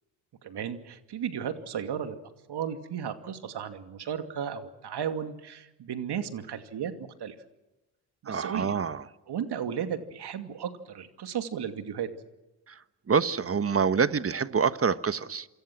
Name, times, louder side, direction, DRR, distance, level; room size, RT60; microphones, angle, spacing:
voice 1, 0.4-2.2 2.5-7.3 8.2-8.8 9.3-12.1, right 8 dB, 55° right, 7 dB, 2.6 m, -34 dB
voice 2, 8.3-9.0 12.7-12.8 13.1-15.5, right 6 dB, 30° right, 13 dB, 1.4 m, -26 dB
27.5 x 25.0 x 6.2 m, 1.0 s
hypercardioid pair, 60°, 47 cm